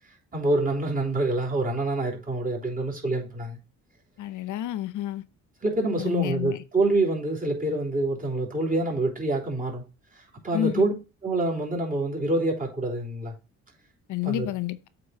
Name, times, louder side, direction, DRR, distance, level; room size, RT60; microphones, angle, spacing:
voice 1, 0.3-3.6 5.6-9.8 10.1-10.9 11.2-13.3 14.2-14.5, right 2 dB, 30° right, 3.3 m, -26 dB
voice 2, 4.2-5.2 6.0-6.6 10.5-10.9 14.1-14.8, left 13 dB, 75° left, 0.8 m, -29 dB
8.1 x 4.0 x 4.6 m
cardioid pair, 90°, 30 cm